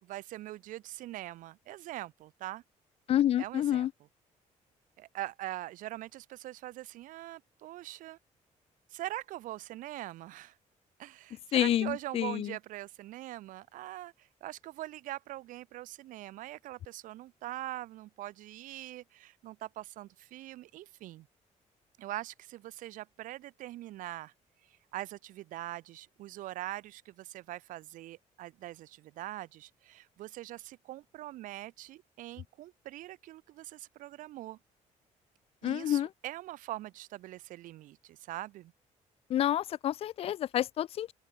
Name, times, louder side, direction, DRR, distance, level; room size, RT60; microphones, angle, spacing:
voice 1, 0.0-2.6 3.4-3.9 5.0-8.2 8.9-10.6 11.0-21.3 22.0-24.3 24.6-34.6 35.6-38.7, right 15 dB, 85° right, 2.1 m, -43 dB
voice 2, 3.1-3.9 11.5-12.5 35.6-36.1 39.3-41.1, left 11 dB, 50° left, 0.4 m, -28 dB
open air
cardioid pair, 150°, 13 cm